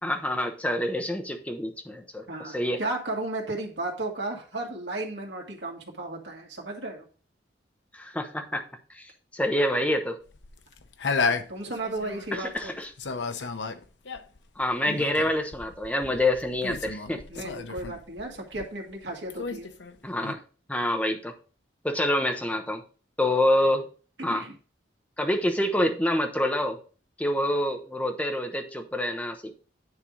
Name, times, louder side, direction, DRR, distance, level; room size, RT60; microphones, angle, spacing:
voice 1, 0.0-2.8 7.9-8.6 8.9-10.2 12.3-12.9 14.6-17.4 20.0-20.4 20.7-21.3 21.8-22.8 23.2-23.9 24.2-24.4 25.2-26.8 27.2-29.5, left 1 dB, 10° left, 4 dB, 1.0 m, -27 dB
voice 2, 2.3-7.1 11.3-12.7 17.3-19.7 24.2-24.5, right 2 dB, 80° right, 1 dB, 2.1 m, -34 dB
sound 1, 10.3-12.7 13.0-19.0 19.3-20.3, left 4 dB, 80° left, 0.7 m, -33 dB
9.7 x 3.6 x 5.0 m, 0.38 s
head